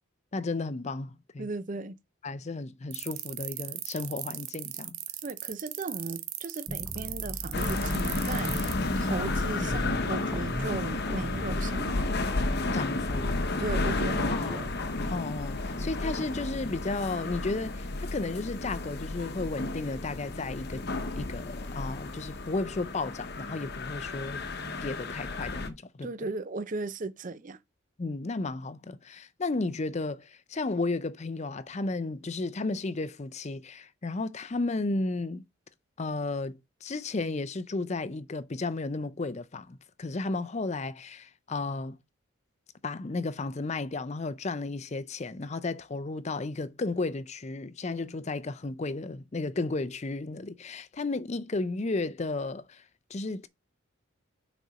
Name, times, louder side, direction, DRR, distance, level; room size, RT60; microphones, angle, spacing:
voice 1, 0.3-1.5 2.2-5.0 12.7-13.4 14.3-14.7 15.1-20.9 21.2-24.4 24.8-26.1 28.0-35.4 36.0-42.0 42.8-52.8 53.1-53.5, left 3 dB, 30° left, 0.5 m, -33 dB
voice 2, 1.4-2.0 5.2-12.2 13.6-14.7 26.0-27.6, right 3 dB, 35° right, 0.5 m, -36 dB
sound 1, 2.9-8.7, right 15 dB, 80° right, 0.8 m, -36 dB
sound 2, 6.7-13.8, equal, 5° right, 0.7 m, -39 dB
sound 3, 7.5-25.7, left 2 dB, 50° left, 0.9 m, -32 dB
6.5 x 4.2 x 5.1 m
head